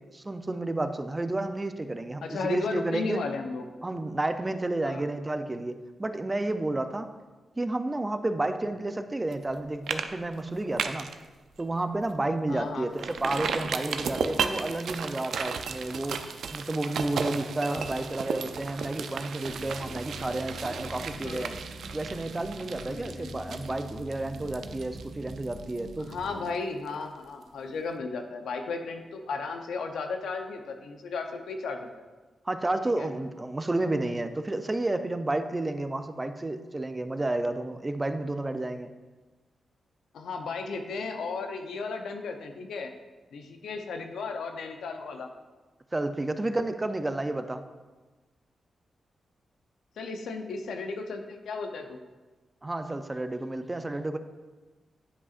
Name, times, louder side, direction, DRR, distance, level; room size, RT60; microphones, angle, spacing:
voice 1, 0.1-3.2 3.8-7.1 7.6-11.1 11.6-16.2 16.5-21.5 21.9-26.1 32.5-38.9 45.9-47.6 52.6-54.2, right 2 dB, 25° right, 9 dB, 0.5 m, -31 dB
voice 2, 2.2-3.6 4.8-5.0 12.5-12.9 16.8-17.2 17.7-18.0 21.2-21.5 22.9-23.6 26.0-31.9 33.0-33.1 40.1-42.9 43.3-45.3 50.0-52.0, left 4 dB, 90° left, 5 dB, 0.6 m, -35 dB
sound 1, 9.3-9.5 9.9-10.1 10.4-11.2 11.6-11.7 12.1-12.2 13.0-26.6 26.9-27.0, right 6 dB, 80° right, 0.4 m, -34 dB
sound 2, 19.5-26.3, equal, 40° right, 1.9 m, -43 dB
9.7 x 5.6 x 2.5 m, 1.3 s
cardioid pair, 75°, 0 cm